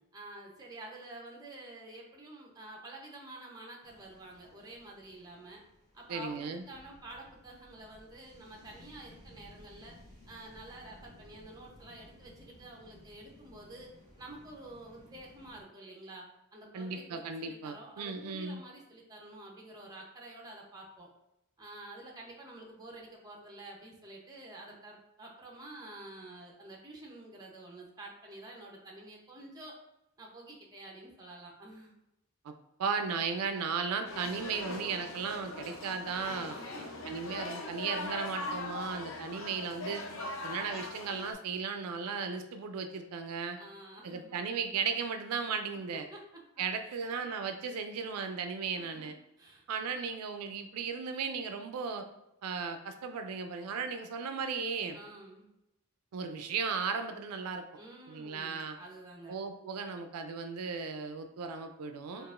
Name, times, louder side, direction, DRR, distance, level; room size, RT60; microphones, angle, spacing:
voice 1, 0.1-5.6 5.9-10.0 10.3-13.9 14.2-16.3 16.5-21.1 21.6-29.8 30.2-31.9 36.5-37.2 43.5-44.4 45.9-46.2 46.9-47.1 48.8-49.1 49.4-49.6 54.9-55.5 57.8-59.4 62.1-62.3, right 2 dB, 15° right, -1 dB, 0.6 m, -49 dB
sound 1, 3.8-15.6, left 1 dB, 20° left, 1.1 m, -58 dB
voice 2, 6.1-6.7 16.7-18.6 32.4-32.5 32.8-36.5 37.0-40.0 40.4-43.6 44.0-46.1 46.6-49.1 49.7-52.1 52.4-55.0 56.1-57.6 58.1-58.8 59.3-62.3, right 5 dB, 85° right, 7 dB, 0.4 m, -36 dB
sound 2, 34.1-41.3, left 2 dB, 60° left, 0.6 m, -41 dB
4.6 x 2.4 x 2.4 m, 0.88 s
head